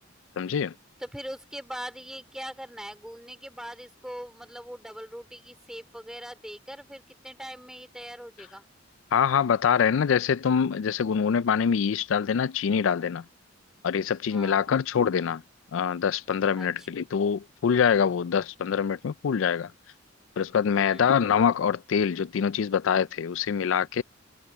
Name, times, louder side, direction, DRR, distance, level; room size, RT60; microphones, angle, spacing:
voice 1, 0.4-0.7 9.1-13.2 13.8-15.4 15.7-19.7 20.4-24.0, left 7 dB, 70° left, 0.4 m, -24 dB
voice 2, 1.0-8.7 14.3-14.7 16.6-16.9 20.7-21.2, equal, 5° right, 3.1 m, -41 dB
head